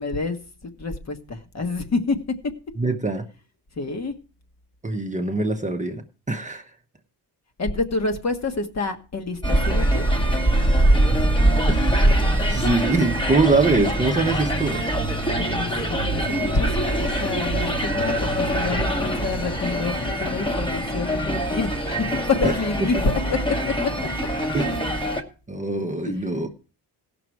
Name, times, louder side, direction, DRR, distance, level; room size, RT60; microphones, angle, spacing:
voice 1, 0.0-2.2 3.8-4.1 7.6-10.0 15.2-23.9 26.0-26.2, left 3 dB, 40° left, 6 dB, 1.4 m, -27 dB
voice 2, 2.8-3.3 4.8-6.7 11.7-12.1 12.5-14.8 22.4-22.6 24.5-24.8 25.5-26.5, right 3 dB, 20° right, 4 dB, 0.8 m, -23 dB
sound 1, 9.4-25.2, right 1 dB, 10° left, 1.2 m, -23 dB
sound 2, 13.1-19.7, right 5 dB, 50° right, 1.1 m, -33 dB
17.0 x 6.1 x 4.7 m, 0.35 s
cardioid pair, 115°, 41 cm